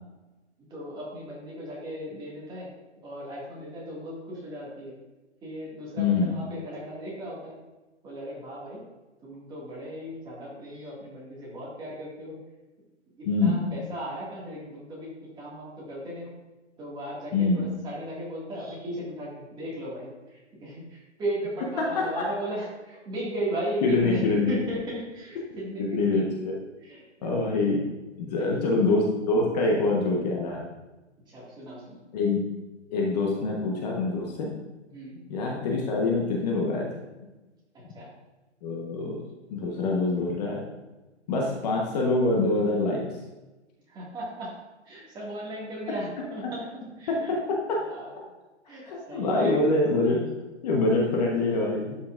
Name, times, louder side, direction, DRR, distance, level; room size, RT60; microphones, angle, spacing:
voice 1, 0.7-2.7 3.0-4.9 5.4-7.5 8.0-8.8 9.2-12.4 13.2-15.1 15.4-16.3 16.8-24.2 24.5-26.2 26.8-27.3 28.3-28.6 31.3-32.0 34.9-35.2 37.9-38.1 43.9-44.5 44.8-47.3 47.9-48.2 48.7-49.7, right 1 dB, 10° right, -6 dB, 2.0 m, -36 dB
voice 2, 6.0-6.3 13.2-13.7 17.3-17.6 21.8-22.1 23.8-24.6 25.8-26.5 27.2-27.8 28.2-30.6 32.1-32.4 32.9-34.5 35.3-36.9 38.6-39.2 39.5-40.6 41.3-43.2 46.4-46.5 47.1-47.8 48.8-50.3 50.6-52.0, left 3 dB, 35° left, -2 dB, 1.2 m, -25 dB
11.5 x 5.7 x 2.5 m, 1.1 s
hypercardioid pair, 145°, 36 cm